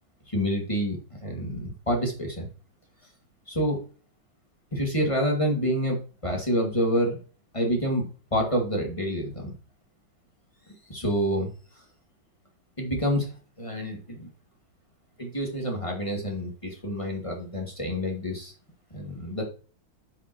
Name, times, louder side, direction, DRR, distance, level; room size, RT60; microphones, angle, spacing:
voice 1, 0.3-2.5 3.5-3.8 4.7-6.0 6.2-7.2 7.5-8.0 8.3-9.5 10.9-11.5 12.8-13.3 13.6-14.3 15.2-18.5 18.9-19.4, equal, 15° left, 0 dB, 2.3 m, -27 dB
11.0 x 5.9 x 3.1 m, 0.36 s
omnidirectional pair, 2.3 m